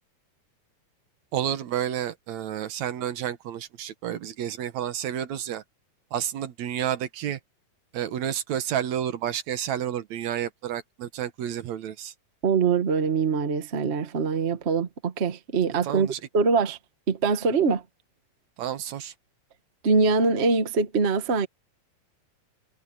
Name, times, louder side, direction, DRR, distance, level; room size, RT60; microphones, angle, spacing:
voice 1, 1.3-5.6 6.1-7.4 7.9-12.1 15.8-16.2 18.6-19.1, right 10 dB, 65° right, 2.2 m, -30 dB
voice 2, 12.4-16.1 16.3-16.8 17.1-17.8 19.8-21.5, right 4 dB, 80° right, 0.5 m, -23 dB
omnidirectional pair, 3.8 m